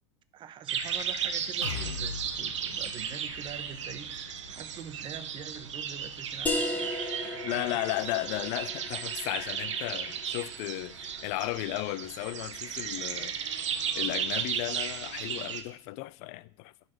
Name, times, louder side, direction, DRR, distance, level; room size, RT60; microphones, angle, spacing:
voice 1, 0.3-4.1 4.5-7.7, right 8 dB, 35° right, 0.8 m, -45 dB
sound 1, 0.7-15.6, right 7 dB, 80° right, 1.0 m, -35 dB
sound 2, 1.6-9.4 9.8-9.9 10.3-10.4, left 7 dB, 85° left, 0.7 m, -45 dB
sound 3, 6.5-11.8, left 1 dB, 10° left, 1.3 m, -37 dB
voice 2, 7.4-13.4 13.9-16.7, left 19 dB, 50° left, 0.4 m, -35 dB
12.0 x 4.1 x 5.9 m
hypercardioid pair, 105°, 15 cm